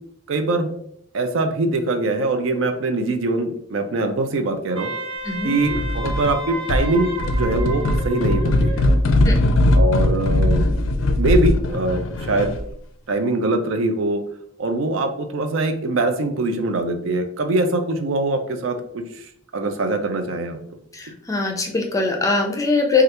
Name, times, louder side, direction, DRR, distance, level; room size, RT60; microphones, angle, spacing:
voice 1, 0.3-0.7 1.1-4.9 5.4-8.9 9.7-10.9 11.2-12.6 13.1-14.2 14.6-20.6, right 2 dB, 75° right, 6 dB, 0.4 m, -23 dB
Wind instrument woodwind instrument, 4.8-9.0, right 2 dB, 30° right, 0.8 m, -32 dB
sound 1, 5.7-6.4 6.7-12.7, left 1 dB, 75° left, 0.4 m, -19 dB
voice 2, 20.9-23.0, left 3 dB, 15° left, 2 dB, 0.4 m, -22 dB
3.3 x 2.4 x 2.8 m, 0.68 s
head